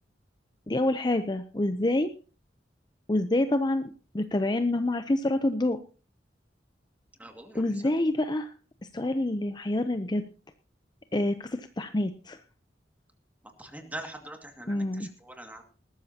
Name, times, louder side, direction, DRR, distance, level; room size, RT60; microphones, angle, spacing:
voice 1, 0.7-2.1 3.1-3.8 4.1-5.8 7.5-8.5 8.9-10.2 11.1-12.4 14.7-15.1, left 1 dB, 25° left, 9 dB, 0.6 m, -27 dB
voice 2, 7.2-7.8 13.4-15.6, right 1 dB, 10° right, 4 dB, 2.2 m, -43 dB
19.5 x 13.0 x 2.9 m, 0.36 s
head